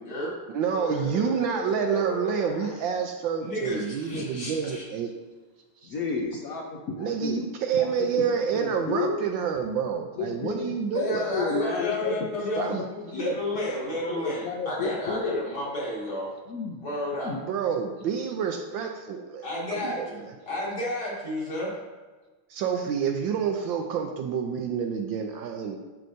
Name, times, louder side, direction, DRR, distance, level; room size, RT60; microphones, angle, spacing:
voice 1, 0.5-5.1 5.8-5.9 7.0-11.3 12.6-12.9 17.3-20.3 22.5-25.8, right 7 dB, 75° right, 4 dB, 1.2 m, -28 dB
sound 1, 0.7-2.8, left 5 dB, 85° left, 2.1 m, -36 dB
voice 2, 3.4-4.8 11.0-12.8 13.1-16.3 16.8-17.3 19.4-21.7, left 1 dB, 50° left, -5 dB, 2.5 m, -31 dB
voice 3, 5.8-7.4 7.7-8.3 8.5-9.2 10.2-15.4 16.5-16.9 17.2-17.4, left 4 dB, 70° left, 0 dB, 0.8 m, -32 dB
12.0 x 4.8 x 2.7 m, 1.3 s
omnidirectional pair, 2.4 m